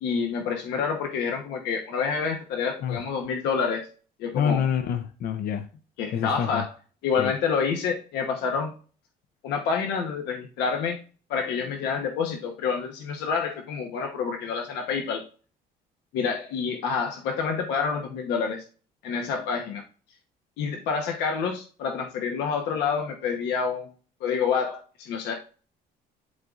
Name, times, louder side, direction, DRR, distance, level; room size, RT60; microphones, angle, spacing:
voice 1, 0.0-3.9 4.2-4.6 6.0-6.7 7.0-8.7 9.4-11.0 11.3-15.2 16.1-18.6 19.0-19.8 20.6-23.9 24.2-25.3, left 6 dB, 85° left, 2 dB, 1.0 m, -28 dB
voice 2, 4.3-5.7 6.1-6.6 7.2-7.3, left 8 dB, 65° left, 8 dB, 0.6 m, -27 dB
11.0 x 3.9 x 2.4 m, 0.38 s
cardioid pair, 110°, 17 cm